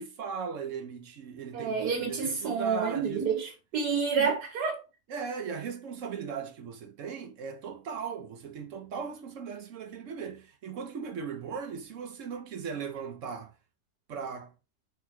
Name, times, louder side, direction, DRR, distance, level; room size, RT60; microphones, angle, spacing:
voice 1, 0.0-3.3 4.2-4.3 5.1-13.6 14.1-14.5, right 6 dB, 60° right, 0.9 m, -38 dB
voice 2, 1.5-4.8, right 5 dB, 80° right, 1.6 m, -29 dB
4.5 x 3.5 x 3.1 m
omnidirectional pair, 1.7 m